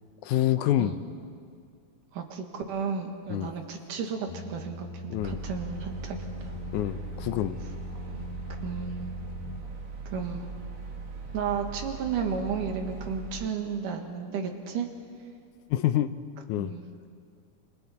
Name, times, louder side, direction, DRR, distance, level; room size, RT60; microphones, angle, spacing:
voice 1, 0.2-1.0 3.3-3.5 5.1-5.4 6.7-7.6 9.5-9.6 15.7-16.1 16.5-16.7, left 13 dB, 80° left, 11 dB, 2.0 m, -26 dB
voice 2, 2.1-6.2 8.1-8.3 8.6-9.1 10.1-10.5 11.3-14.9 16.6-16.8, right 6 dB, 80° right, 4 dB, 3.2 m, -33 dB
sound 1, 4.3-9.7, left 3 dB, 20° left, 1.0 m, -41 dB
sound 2, 5.2-13.5, right 4 dB, 45° right, 2.3 m, -40 dB
27.5 x 25.5 x 4.3 m, 2.2 s
omnidirectional pair, 3.7 m